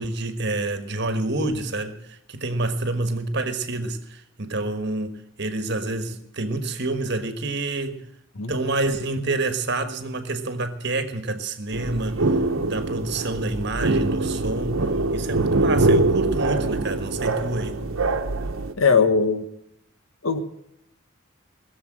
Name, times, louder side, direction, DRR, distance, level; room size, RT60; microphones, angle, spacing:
voice 1, 0.0-8.1 8.5-12.2 12.6-17.8, right 2 dB, 55° right, 1.4 m, -28 dB
sound 1, 11.7-18.7, right 2 dB, 80° right, 1.0 m, -23 dB
voice 2, 18.8-19.4 20.2-20.4, left 5 dB, 80° left, 1.4 m, -19 dB
20.0 x 7.2 x 8.8 m
head